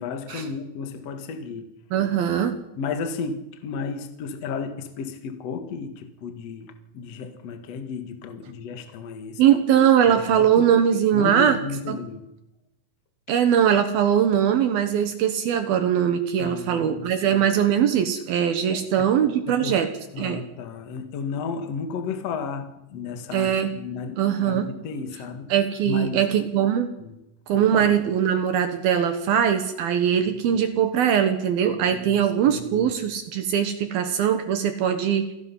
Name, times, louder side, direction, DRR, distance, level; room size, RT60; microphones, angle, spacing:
voice 1, 0.0-1.7 2.8-9.4 10.1-10.7 11.1-12.3 16.4-17.4 18.7-19.9 20.1-25.5 25.8-26.2 27.0-27.2 27.5-27.9 30.5-30.6 31.9-32.9, left 5 dB, 65° left, 1.6 m, -33 dB
voice 2, 1.9-2.6 9.4-11.6 11.9-12.0 13.3-19.9 20.2-20.4 23.3-23.7 24.2-24.7 25.5-26.9 27.5-35.3, right 9 dB, 70° right, 2.5 m, -21 dB
27.5 x 18.0 x 5.6 m
omnidirectional pair, 5.8 m